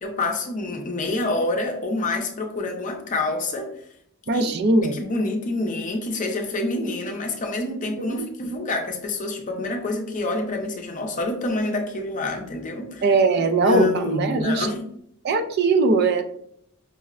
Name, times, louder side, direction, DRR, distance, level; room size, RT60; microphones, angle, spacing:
voice 1, 0.0-3.7 4.3-4.5 4.8-13.0 13.6-14.8, left 2 dB, 40° left, 3 dB, 0.6 m, -27 dB
voice 2, 4.3-5.0 8.0-8.3 13.0-14.7 15.2-16.2, right 3 dB, 50° right, 8 dB, 0.3 m, -20 dB
5.4 x 2.0 x 2.4 m, 0.71 s
head